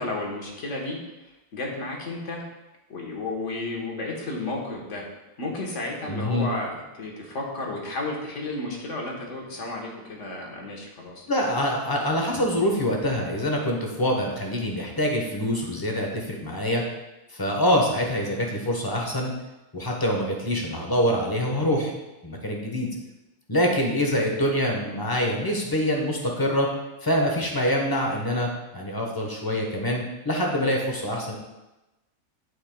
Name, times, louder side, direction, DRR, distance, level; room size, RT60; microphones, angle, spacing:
voice 1, 0.0-2.4 2.9-5.0 5.4-11.2 24.1-24.3, left 2 dB, 55° left, -1 dB, 1.5 m, -33 dB
voice 2, 6.1-6.5 11.3-16.8 17.3-19.3 19.7-21.9 22.2-22.9 23.5-26.7 27.0-31.4, equal, 15° left, 0 dB, 0.9 m, -25 dB
11.5 x 4.8 x 2.3 m, 1.0 s
omnidirectional pair, 1.6 m